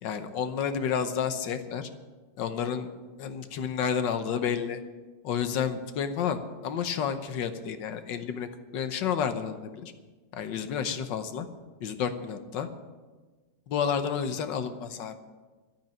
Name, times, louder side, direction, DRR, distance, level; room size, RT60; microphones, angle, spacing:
voice 1, 0.0-1.9 2.4-2.9 3.2-4.8 5.2-8.5 8.7-9.9 10.3-11.5 11.8-12.7 13.7-15.2, left 7 dB, 80° left, 10 dB, 1.6 m, -30 dB
12.0 x 8.8 x 8.9 m, 1.3 s
omnidirectional pair, 1.9 m